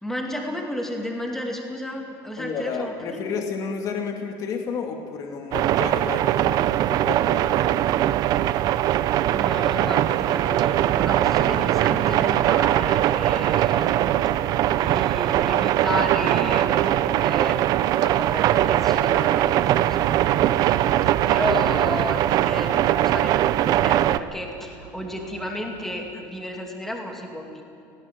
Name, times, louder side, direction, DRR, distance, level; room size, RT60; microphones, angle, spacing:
voice 1, 0.0-3.2 9.3-14.2 14.7-17.6 18.0-27.6, left 1 dB, 5° left, 1 dB, 2.6 m, -33 dB
voice 2, 2.4-8.0, left 5 dB, 40° left, 3 dB, 2.3 m, -31 dB
sound 1, 5.5-24.2, right 13 dB, 45° right, 0.6 m, -21 dB
sound 2, 9.5-26.1, right 9 dB, 75° right, 1.2 m, -43 dB
19.0 x 17.0 x 9.3 m, 2.6 s
cardioid pair, 160°, 9 cm